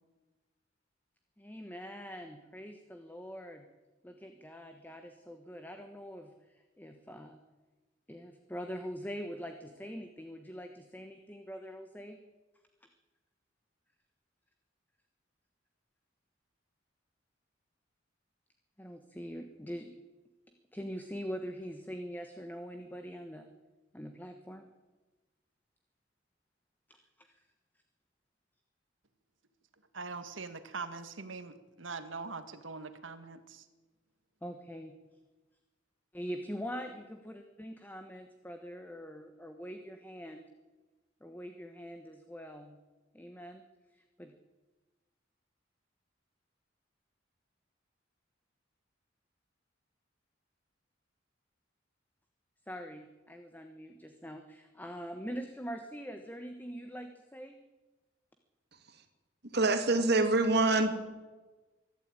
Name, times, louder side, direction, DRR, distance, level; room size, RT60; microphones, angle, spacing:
voice 1, 1.4-3.6 4.0-7.4 8.1-12.2 18.8-19.9 20.7-23.5 23.9-24.7 26.9-27.4 34.4-35.0 36.1-40.4 41.2-42.8 43.1-43.6 43.9-44.3 52.7-57.5, equal, 10° left, 6 dB, 1.3 m, -43 dB
voice 2, 29.9-33.6, right 4 dB, 80° right, 10 dB, 1.8 m, -42 dB
voice 3, 59.5-61.0, right 2 dB, 55° right, 7 dB, 2.5 m, -25 dB
23.5 x 12.5 x 9.0 m, 1.2 s
head